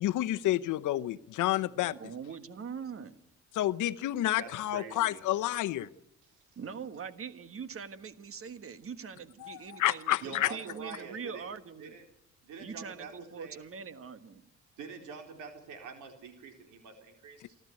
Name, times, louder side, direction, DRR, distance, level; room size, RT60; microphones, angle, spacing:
voice 1, 0.0-1.9 3.5-5.9 9.4-10.5, left 14 dB, 80° left, 0.8 m, -29 dB
voice 2, 1.8-3.1 6.5-11.9 12.6-14.4, right 6 dB, 45° right, 1.5 m, -42 dB
voice 3, 4.4-5.2 6.2-6.5 10.2-11.5 11.8-12.0 12.4-13.6 14.8-17.6, right 5 dB, 90° right, 4.2 m, -46 dB
28.5 x 12.0 x 9.5 m
cardioid pair, 90°, 30 cm